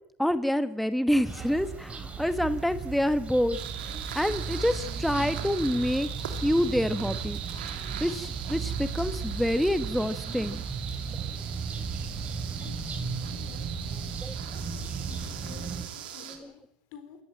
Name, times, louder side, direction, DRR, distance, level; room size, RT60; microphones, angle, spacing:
voice 1, 0.2-3.6 4.1-7.4 8.0-10.6 14.2-14.3 16.3-16.4, equal, ahead, 1.2 m, -27 dB
sound 1, 1.3-15.8, right 5 dB, 25° right, 5.6 m, -35 dB
sound 2, 3.5-16.4, right 10 dB, 85° right, 3.3 m, -40 dB
voice 2, 12.6-14.3 15.1-17.2, left 8 dB, 65° left, 4.0 m, -51 dB
27.0 x 14.0 x 9.1 m
hypercardioid pair, 90°, 5 cm